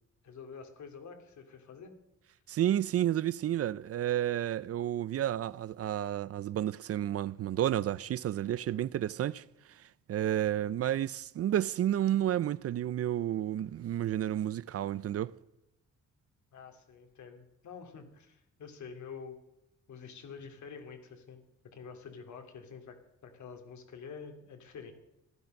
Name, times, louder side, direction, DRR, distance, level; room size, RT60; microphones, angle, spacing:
voice 1, 0.2-2.0 10.5-10.8 16.5-19.4 19.9-21.5 21.7-23.0 23.2-24.9, left 6 dB, 70° left, 2.6 m, -48 dB
voice 2, 2.5-9.4 10.1-15.3, right 11 dB, 55° right, 0.4 m, -31 dB
15.0 x 12.5 x 6.5 m
wide cardioid pair, 160°, 30 cm